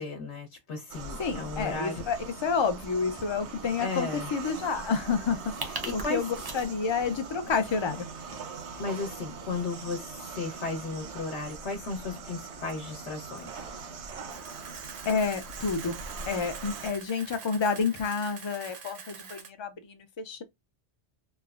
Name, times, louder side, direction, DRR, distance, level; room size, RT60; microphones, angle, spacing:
voice 1, 0.0-2.0 3.8-4.3 5.8-6.2 8.8-13.7, left 3 dB, 80° left, 1.1 m, -35 dB
sound 1, 0.9-16.9, right 4 dB, 75° right, 1.0 m, -41 dB
voice 2, 1.2-5.4 5.7-8.0 15.1-16.0 16.3-20.4, left 5 dB, 50° left, 0.3 m, -29 dB
sound 2, 5.3-17.4, right 2 dB, 30° right, 0.5 m, -47 dB
Camera, 14.3-19.5, right 6 dB, 55° right, 0.7 m, -45 dB
3.2 x 2.0 x 2.3 m
omnidirectional pair, 1.1 m